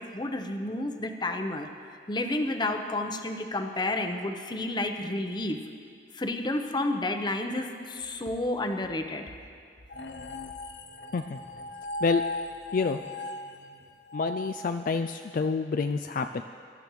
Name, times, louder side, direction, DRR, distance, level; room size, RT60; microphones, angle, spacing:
voice 1, 0.0-1.7 2.1-5.6 6.1-9.2, left 2 dB, 25° left, 5 dB, 0.8 m, -30 dB
sound 1, 9.9-15.3, left 1 dB, 75° left, 0.8 m, -38 dB
voice 2, 14.1-16.4, left 4 dB, 50° left, 7 dB, 0.3 m, -28 dB
23.5 x 12.5 x 3.2 m, 2.2 s
head